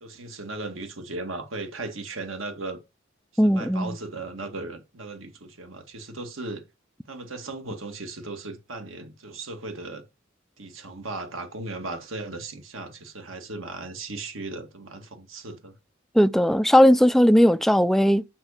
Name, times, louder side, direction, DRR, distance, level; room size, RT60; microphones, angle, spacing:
voice 1, 0.0-2.8 3.4-6.6 7.1-10.0 10.6-15.8, right 2 dB, 70° right, 2.0 m, -36 dB
voice 2, 3.4-4.0 16.1-18.2, equal, ahead, 0.4 m, -18 dB
6.3 x 5.8 x 6.6 m
head